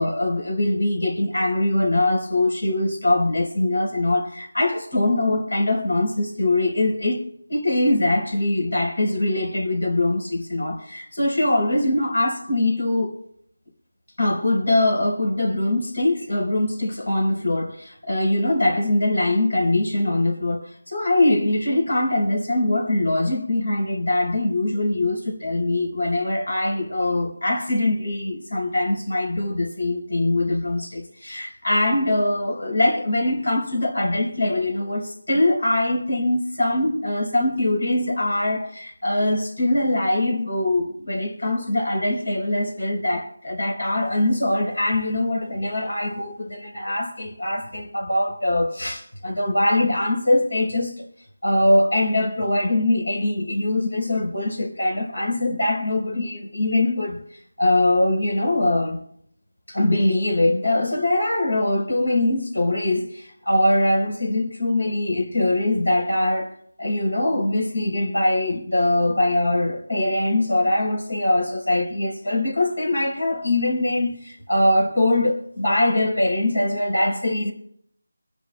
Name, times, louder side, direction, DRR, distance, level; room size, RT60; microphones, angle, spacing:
voice 1, 0.0-13.2 14.2-51.1 51.4-57.2 57.6-59.0 59.7-66.5 66.8-77.5, left 1 dB, 85° left, 4.0 m, -22 dB
26.0 x 10.5 x 2.2 m
figure-of-eight pair, 175°, 0 cm